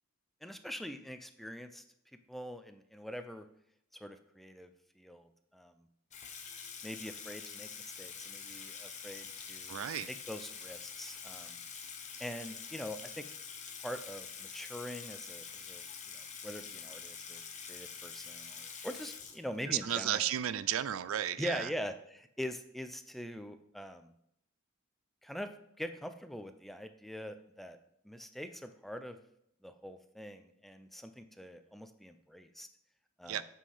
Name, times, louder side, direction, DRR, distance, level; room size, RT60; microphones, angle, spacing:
voice 1, 0.4-1.8 2.3-3.5 4.0-4.7 5.0-5.9 6.8-11.6 12.2-13.2 13.8-20.2 21.4-24.1 25.2-27.8 28.0-29.2 29.6-32.7 33.2-33.4, equal, ahead, 8 dB, 0.4 m, -43 dB
Water tap faucet / Sink (filling or washing), 6.1-19.8, left 6 dB, 35° left, 0.8 m, -46 dB
voice 2, 9.7-10.1 19.7-21.7 33.2-33.4, right 10 dB, 70° right, 15 dB, 0.4 m, -33 dB
7.6 x 5.5 x 3.3 m, 0.74 s
head